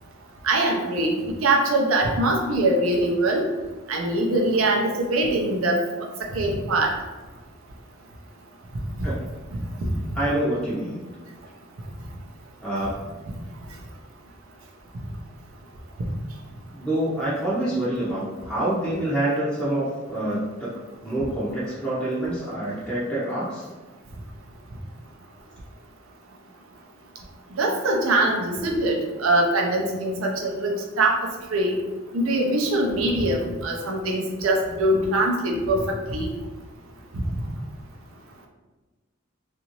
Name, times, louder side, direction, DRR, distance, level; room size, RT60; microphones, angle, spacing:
voice 1, 0.4-3.5 3.9-5.8 6.3-6.9 9.8-9.9 27.6-31.2 31.5-31.8 32.1-35.8 36.1-36.3, right 2 dB, 85° right, 0 dB, 0.6 m, -22 dB
voice 2, 10.1-11.0 12.6-12.9 16.7-20.7 21.0-23.7, right 1 dB, 5° left, -9 dB, 0.5 m, -26 dB
2.9 x 2.5 x 2.9 m, 1.2 s
head